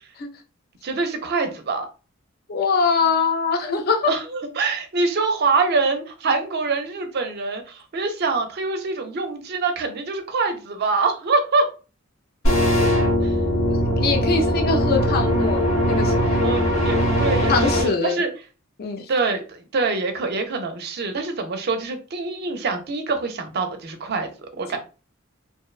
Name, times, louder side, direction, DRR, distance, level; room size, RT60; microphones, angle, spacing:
voice 1, 0.8-1.9 4.1-11.7 13.2-13.4 16.4-18.3 19.1-24.8, right 3 dB, 50° right, 5 dB, 0.4 m, -25 dB
voice 2, 2.5-4.1 14.0-16.4 17.5-18.2 18.8-19.1, left 4 dB, 45° left, 4 dB, 0.4 m, -23 dB
sound 1, 12.4-17.8, equal, 65° left, 0.9 m, -20 dB
2.6 x 2.1 x 2.3 m, 0.34 s
head